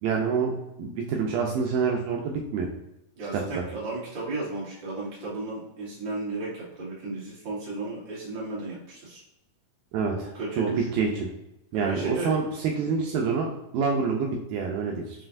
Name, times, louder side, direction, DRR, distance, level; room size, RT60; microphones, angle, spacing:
voice 1, 0.0-2.7 3.3-3.6 9.9-11.3 11.7-13.5 13.7-15.0, right 5 dB, 90° right, 0 dB, 2.0 m, -27 dB
voice 2, 3.1-9.2 10.3-10.9 11.7-12.3 15.1-15.3, right 2 dB, 45° right, -7 dB, 1.7 m, -34 dB
7.6 x 2.5 x 2.5 m, 0.88 s
omnidirectional pair, 4.5 m